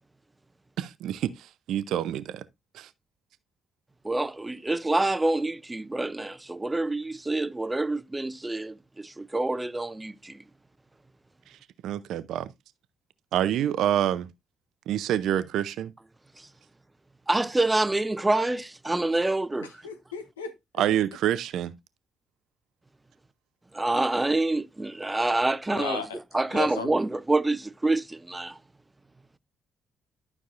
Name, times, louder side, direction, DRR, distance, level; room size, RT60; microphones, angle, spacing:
voice 1, 0.8-1.3 1.7-2.4 2.7-2.9 11.8-12.5 13.3-14.3 14.9-15.9 20.8-21.7, right 11 dB, 65° right, 0.5 m, -27 dB
voice 2, 4.0-10.4 17.3-19.7 23.7-26.0 26.3-28.6, right 2 dB, 15° right, 0.6 m, -27 dB
voice 3, 19.6-20.5 25.7-26.2 26.5-26.9, left 6 dB, 80° left, 0.8 m, -35 dB
12.0 x 6.0 x 2.5 m
figure-of-eight pair, 40°, 0 cm